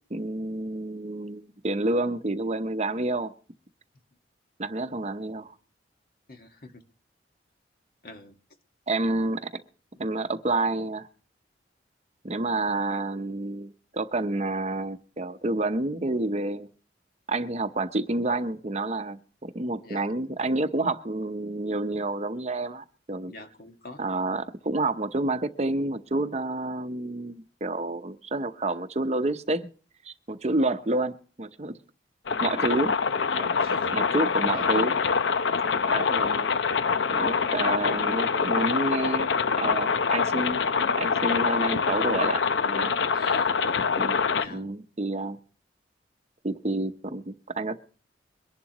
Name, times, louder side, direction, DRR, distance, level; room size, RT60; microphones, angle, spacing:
voice 1, 0.1-3.3 4.6-5.5 8.9-9.6 10.0-11.1 12.2-16.7 17.3-23.3 24.0-29.7 30.0-31.7 32.4-33.0 33.3-33.5 33.9-35.0 35.9-36.5 37.1-39.3 39.6-40.6 41.0-43.0 44.0-44.2 44.5-45.4 46.4-47.8, right 2 dB, 35° right, 0.7 m, -29 dB
voice 2, 6.3-6.8 8.0-8.3 19.8-20.1 23.3-24.0 33.6-33.9 34.5-34.6 35.5-35.7 36.0-36.1 43.1-43.5 44.4-44.7, left 2 dB, 55° left, 1.6 m, -44 dB
sound 1, 32.3-44.5, left 5 dB, 85° left, 0.7 m, -25 dB
23.0 x 11.0 x 3.0 m
head